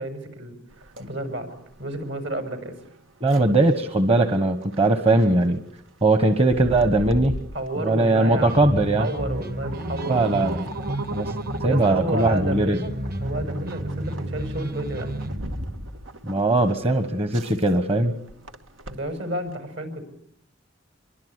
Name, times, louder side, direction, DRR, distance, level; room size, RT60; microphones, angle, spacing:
voice 1, 0.0-1.5 1.8-2.8 7.5-10.7 11.7-12.9 13.2-15.1 18.9-20.0, right 1 dB, 70° right, 8 dB, 6.7 m, -31 dB
sound 1, 0.7-19.5, right 1 dB, 85° right, 2.2 m, -38 dB
voice 2, 3.2-5.6 6.0-7.3 7.8-9.1 10.1-10.6 11.1-11.3 11.6-12.8 16.2-18.2, right 2 dB, 30° right, 9 dB, 1.3 m, -20 dB
sound 2, 8.3-15.4, right 1 dB, 50° right, 1.8 m, -31 dB
26.0 x 23.5 x 9.8 m, 0.68 s
head